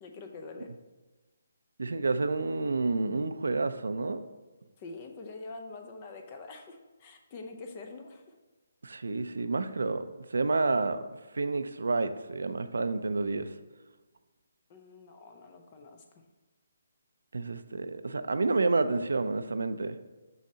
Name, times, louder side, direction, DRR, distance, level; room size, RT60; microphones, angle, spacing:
voice 1, 0.0-0.7 4.8-8.2 14.7-16.0, left 3 dB, 25° left, 5 dB, 0.6 m, -45 dB
voice 2, 1.8-4.2 8.8-11.1 11.3-13.5 17.3-20.0, right 3 dB, 85° right, 10 dB, 0.5 m, -29 dB
6.6 x 6.3 x 2.8 m, 1.2 s
hypercardioid pair, 170°, 0 cm